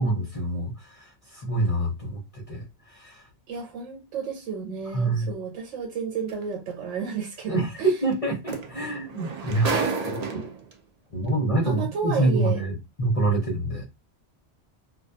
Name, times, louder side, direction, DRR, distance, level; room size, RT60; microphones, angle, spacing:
voice 1, 0.0-3.2 4.9-5.3 7.5-10.5 11.1-13.8, right 2 dB, 40° left, 0.6 m, -26 dB
voice 2, 3.5-7.9 10.3-10.5 11.6-12.6, right 6 dB, 90° right, 1.0 m, -32 dB
sound 1, 6.3-6.4 8.1-8.2 8.5-10.7 11.6-11.7, right 4 dB, 65° right, 0.4 m, -30 dB
2.3 x 2.2 x 2.6 m
omnidirectional pair, 1.2 m